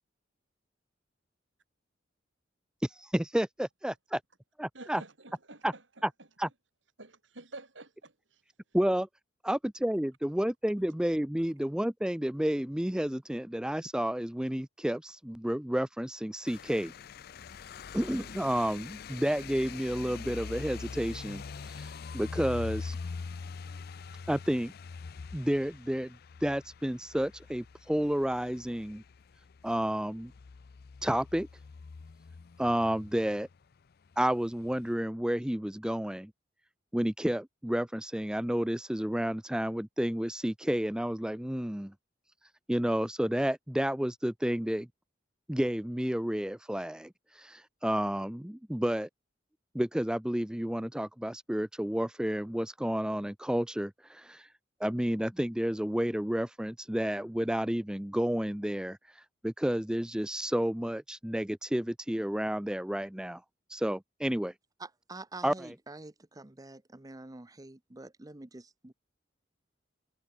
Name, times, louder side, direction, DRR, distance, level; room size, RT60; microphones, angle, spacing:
voice 1, 3.0-3.9 4.6-5.0 5.6-5.7 6.0-6.1 6.4-6.5 8.7-9.1 9.4-16.9 17.9-23.0 24.3-24.7 25.3-29.0 29.6-30.3 31.0-31.5 32.6-33.5 34.2-36.3 36.9-41.9 42.7-44.9 45.5-47.1 47.4-49.1 49.7-54.4 54.8-59.0 59.4-63.4 63.7-64.5 65.4-65.5, equal, 5° right, 0.5 m, -31 dB
voice 2, 4.7-5.8 7.0-8.1, right 2 dB, 85° right, 4.9 m, -48 dB
sound 1, 16.4-33.7 34.1-34.9, left 5 dB, 55° left, 0.5 m, -44 dB
voice 3, 64.8-68.9, right 2 dB, 20° right, 0.9 m, -47 dB
head